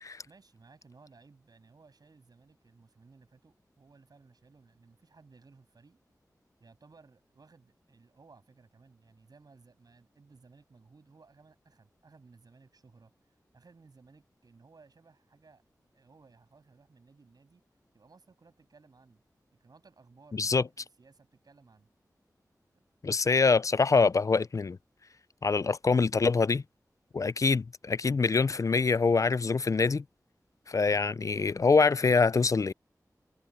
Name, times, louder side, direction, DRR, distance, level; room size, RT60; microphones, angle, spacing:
voice 1, 0.2-6.0 6.6-13.1 13.5-15.6 15.9-17.6 17.9-19.2 19.6-21.9, right 4 dB, 70° right, 7.7 m, -59 dB
voice 2, 20.3-20.6 23.0-24.8 25.4-26.6 27.1-30.0 30.7-32.7, left 4 dB, 50° left, 0.4 m, -25 dB
wide cardioid pair, 60°, 7 cm